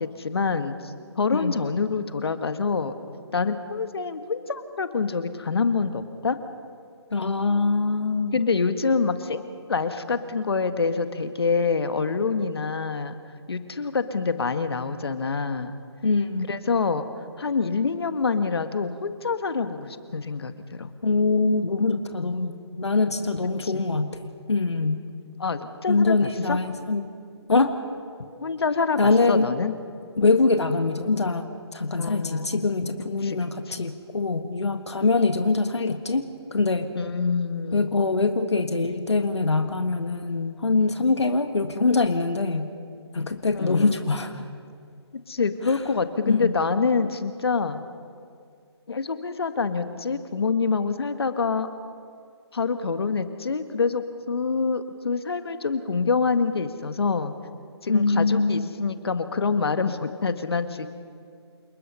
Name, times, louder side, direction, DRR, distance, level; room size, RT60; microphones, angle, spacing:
voice 1, 0.0-2.9 3.3-6.4 8.3-9.4 9.7-13.1 13.5-15.7 16.5-17.0 17.4-20.9 23.6-23.9 25.4-26.6 28.4-29.7 32.0-32.6 33.2-33.4 33.7-33.9 36.9-37.9 43.5-44.0 45.3-47.8 48.9-51.7 52.5-57.3 57.8-60.9, left 4 dB, 60° left, 9 dB, 1.6 m, -26 dB
voice 2, 7.1-8.3 16.0-16.5 21.0-24.2 24.5-25.0 25.9-27.1 27.5-27.7 29.0-29.5 30.2-36.2 36.5-36.9 37.7-42.7 43.1-44.4 46.3-46.5 57.9-58.7, left 3 dB, 75° left, 7 dB, 1.6 m, -23 dB
28.5 x 19.5 x 5.6 m, 2.2 s
figure-of-eight pair, 145°, 14 cm